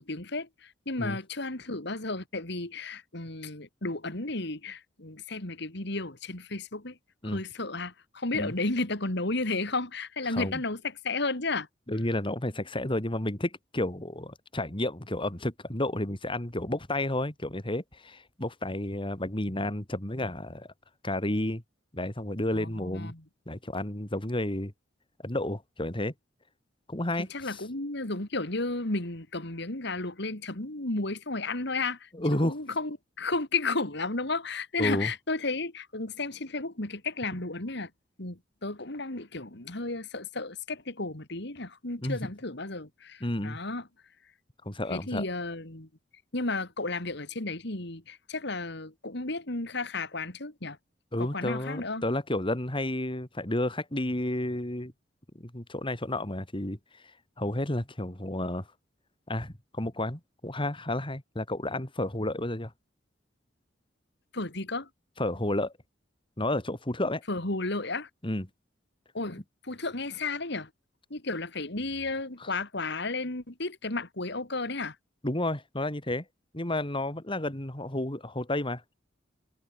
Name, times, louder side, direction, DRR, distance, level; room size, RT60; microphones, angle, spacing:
voice 1, 0.0-7.0 7.2-11.7 22.5-23.2 27.2-32.1 32.4-37.9 38.2-43.8 44.9-45.9 46.3-50.8 51.2-52.0 64.3-64.9 67.3-68.1 69.1-70.7 71.1-75.0, left 3 dB, 65° left, 3.3 m, -33 dB
voice 2, 10.3-10.6 11.9-20.7 21.0-21.6 21.9-23.1 23.5-24.7 25.2-26.1 26.9-27.6 32.1-32.6 34.8-35.1 42.0-42.2 43.2-43.6 44.6-45.2 51.1-54.9 55.3-57.0 57.4-58.7 59.3-62.7 65.2-65.7 66.4-67.2 68.2-68.5 72.4-72.5 75.2-76.2 76.5-78.9, left 1 dB, 30° left, 3.2 m, -31 dB
head